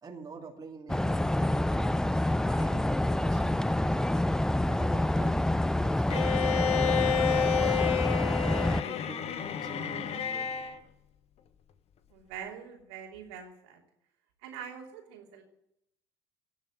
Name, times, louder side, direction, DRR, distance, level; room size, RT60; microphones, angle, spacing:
voice 1, 0.0-4.1 4.6-7.0 7.5-9.3 9.6-10.5, right 4 dB, 25° right, 2 dB, 2.6 m, -46 dB
sound 1, 0.9-8.8, left 1 dB, 5° left, 0.5 m, -27 dB
Bowed string instrument, 6.1-10.8, left 8 dB, 45° left, 1.4 m, -30 dB
voice 2, 12.1-13.8 14.4-15.4, right 8 dB, 70° right, 1 dB, 3.1 m, -44 dB
17.0 x 7.2 x 9.2 m, 0.77 s
hypercardioid pair, 65°, 14 cm